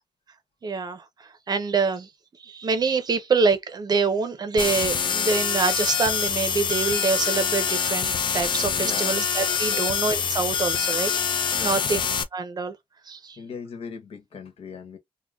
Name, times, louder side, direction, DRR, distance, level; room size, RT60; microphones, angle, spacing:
voice 1, 0.6-1.0 1.5-2.1 2.4-12.0 12.3-12.8 13.1-13.4, right 4 dB, 45° right, 0.6 m, -25 dB
sound 1, 4.6-12.2, left 7 dB, 55° left, 0.5 m, -25 dB
voice 2, 8.8-9.2 9.6-9.8 11.5-12.2 13.4-15.0, left 5 dB, 85° left, 1.0 m, -39 dB
3.6 x 2.1 x 2.4 m
wide cardioid pair, 140°, 10 cm